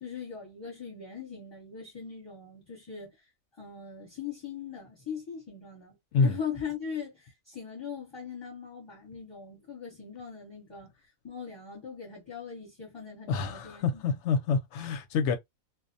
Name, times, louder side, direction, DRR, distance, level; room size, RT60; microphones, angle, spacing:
voice 1, 0.0-3.2 3.6-6.0 6.2-10.9 11.2-14.1, left 7 dB, 20° left, 0.9 m, -40 dB
voice 2, 13.3-15.3, left 5 dB, 65° left, 0.8 m, -27 dB
2.3 x 2.0 x 2.5 m
omnidirectional pair, 1.4 m